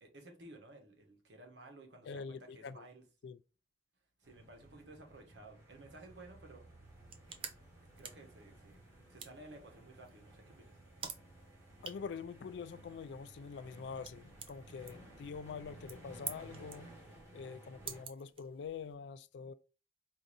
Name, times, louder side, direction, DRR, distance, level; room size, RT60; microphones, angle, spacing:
voice 1, 0.0-3.0 4.2-6.6 8.0-10.8, right 2 dB, 80° right, 1.1 m, -55 dB
voice 2, 2.1-2.9 3.2-3.4 11.8-16.9 17.3-19.5, left 5 dB, 75° left, 0.3 m, -45 dB
sound 1, 4.2-18.0, right 1 dB, 15° right, 1.9 m, -56 dB
sound 2, 6.8-18.9, right 7 dB, 30° right, 0.4 m, -51 dB
4.7 x 2.6 x 2.6 m
head